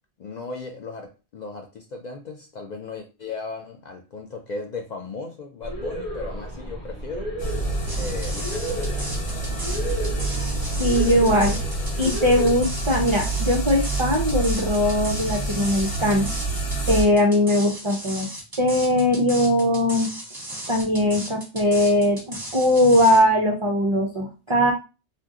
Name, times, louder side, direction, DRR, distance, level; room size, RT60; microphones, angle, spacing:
voice 1, 0.2-7.3 8.0-9.6, left 3 dB, 55° left, 2 dB, 0.5 m, -36 dB
sound 1, 5.6-12.5, right 1 dB, 35° left, 1.0 m, -32 dB
sound 2, 7.4-17.0, right 2 dB, 75° left, 1.2 m, -27 dB
sound 3, 7.9-23.2, right 1 dB, 20° right, 0.9 m, -36 dB
voice 2, 10.8-11.6 12.0-16.3 16.9-18.3 18.6-20.1 20.7-24.7, left 1 dB, 45° right, -1 dB, 0.3 m, -20 dB
2.6 x 2.2 x 3.5 m, 0.31 s
omnidirectional pair, 1.1 m